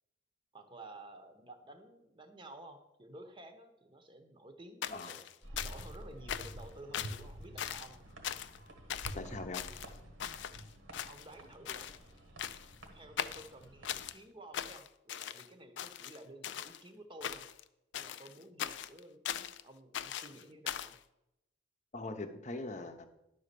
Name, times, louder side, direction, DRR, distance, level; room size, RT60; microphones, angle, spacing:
voice 1, 0.5-5.2 5.6-8.0 11.0-11.9 12.9-17.4 18.0-20.9, right 1 dB, 25° right, 6 dB, 0.9 m, -53 dB
sound 1, 4.8-6.0 6.3-6.6 6.9-7.2 7.6-7.9 8.2-8.6 8.9-9.2 9.5-10.6 10.9-11.4 11.7-12.0 12.4-12.8 13.2-14.2 14.5-15.5 15.8-16.8 17.2-17.6 17.9-19.6 19.9-21.0, left 10 dB, 60° left, 0.4 m, -40 dB
sound 2, 5.4-14.1, right 1 dB, 75° right, 1.4 m, -49 dB
voice 2, 9.1-9.6 21.9-23.1, left 2 dB, 35° left, 7 dB, 0.8 m, -41 dB
11.0 x 4.1 x 6.8 m, 0.89 s
head